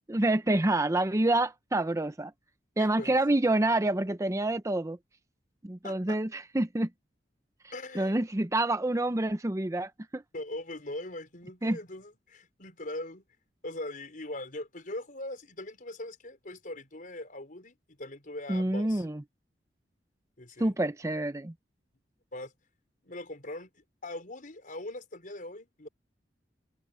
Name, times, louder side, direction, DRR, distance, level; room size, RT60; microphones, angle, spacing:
voice 1, 0.1-2.3 2.8-5.0 5.6-6.9 7.9-10.2 11.6-11.8 18.5-19.2 20.6-21.5, right 2 dB, 20° right, 0.6 m, -27 dB
voice 2, 2.8-3.2 5.8-6.2 7.7-8.2 10.3-13.2 13.6-19.0 20.4-20.7 22.3-22.5 23.0-25.9, left 1 dB, 50° left, 4.9 m, -41 dB
head